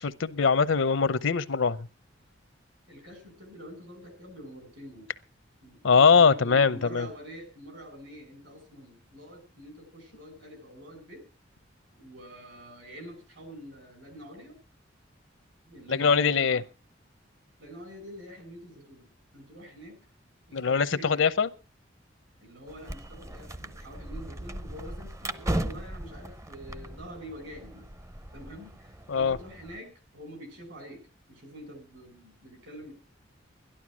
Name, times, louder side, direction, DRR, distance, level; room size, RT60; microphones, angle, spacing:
voice 1, 0.0-1.9 5.8-7.1 15.9-16.6 20.5-21.5 29.1-29.4, left 5 dB, 80° left, 0.7 m, -22 dB
voice 2, 2.9-5.1 5.6-11.2 12.0-14.5 15.7-16.6 17.6-19.1 19.3-20.0 20.5-21.3 22.4-27.9 28.3-32.9, equal, 70° right, 6.2 m, -46 dB
sound 1, 22.7-29.8, right 1 dB, 15° right, 0.6 m, -37 dB
12.5 x 11.5 x 6.1 m
head